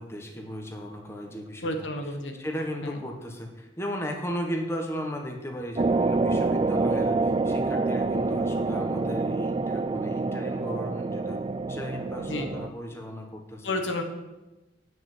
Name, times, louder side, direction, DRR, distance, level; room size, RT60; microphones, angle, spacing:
voice 1, 0.0-1.7 2.4-11.4 11.7-13.8, equal, 15° left, 2 dB, 1.3 m, -36 dB
voice 2, 1.6-2.3 2.8-3.0 12.2-12.5 13.6-14.0, left 1 dB, 85° left, 4 dB, 1.5 m, -31 dB
sound 1, 5.8-12.7, right 3 dB, 30° right, 0.3 m, -27 dB
9.9 x 6.4 x 7.4 m, 1.0 s
head